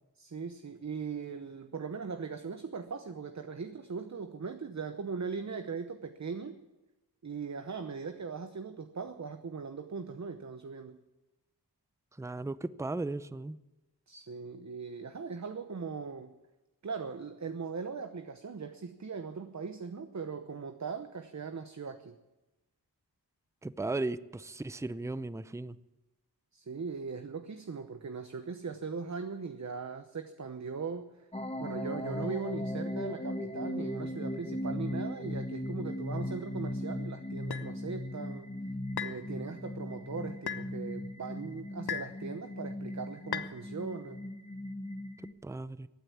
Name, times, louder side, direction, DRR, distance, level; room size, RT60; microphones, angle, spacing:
voice 1, 0.2-6.6 7.2-11.0 14.1-16.4 16.8-22.1 26.5-31.3 31.6-38.5 39.0-44.2, right 5 dB, 45° right, 8 dB, 0.9 m, -39 dB
voice 2, 12.2-13.6 23.6-25.8 45.4-45.9, right 2 dB, 5° right, 16 dB, 0.5 m, -36 dB
sound 1, 31.3-45.3, left 1 dB, 15° left, 1.2 m, -38 dB
sound 2, 37.5-37.7 39.0-39.2 40.5-40.7 41.9-42.2 43.3-43.5, left 8 dB, 70° left, 0.9 m, -36 dB
16.0 x 9.2 x 8.5 m, 1.0 s
wide cardioid pair, 70°, 40 cm